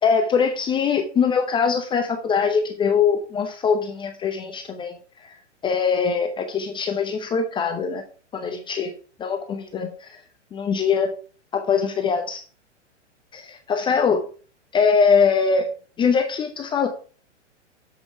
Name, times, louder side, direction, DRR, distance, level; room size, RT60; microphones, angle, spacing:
voice 1, 0.0-5.0 5.2-5.3 5.6-8.0 8.3-8.9 9.2-10.2 10.5-11.1 11.5-12.4 13.3-13.4 13.7-14.2 14.7-15.7 16.0-16.9, left 6 dB, 15° left, 6 dB, 0.7 m, -22 dB
7.7 x 7.0 x 4.6 m, 0.39 s
figure-of-eight pair, 110°, 36 cm